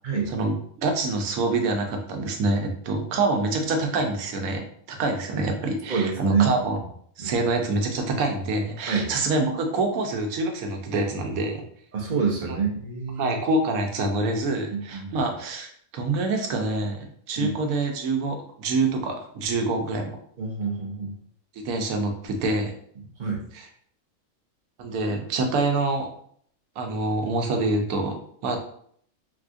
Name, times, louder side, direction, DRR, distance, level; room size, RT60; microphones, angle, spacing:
voice 1, 0.3-6.8 7.2-11.6 12.4-12.6 13.2-20.1 21.6-22.7 24.8-26.1 26.8-28.6, right 2 dB, 75° right, 4 dB, 1.1 m, -26 dB
voice 2, 5.9-6.8 7.2-7.4 8.9-9.1 11.9-13.4 14.7-15.1 17.4-17.5 20.4-21.1 23.2-23.4, right 5 dB, 55° right, -2 dB, 0.5 m, -27 dB
3.5 x 2.3 x 2.5 m, 0.62 s
omnidirectional pair, 1.5 m